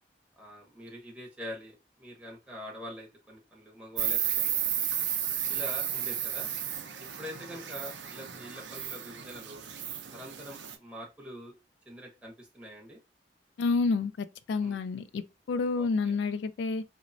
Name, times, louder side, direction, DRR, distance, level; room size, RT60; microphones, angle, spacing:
voice 1, 0.4-4.9 5.5-6.5 7.0-9.6 10.1-11.5 11.9-13.0 14.6-14.8 15.8-16.1, equal, 5° right, 0.7 m, -45 dB
Insect, 4.0-10.8, right 9 dB, 75° right, 0.5 m, -33 dB
voice 2, 13.6-15.2 15.5-16.8, left 4 dB, 70° left, 0.3 m, -29 dB
2.9 x 2.1 x 2.5 m
head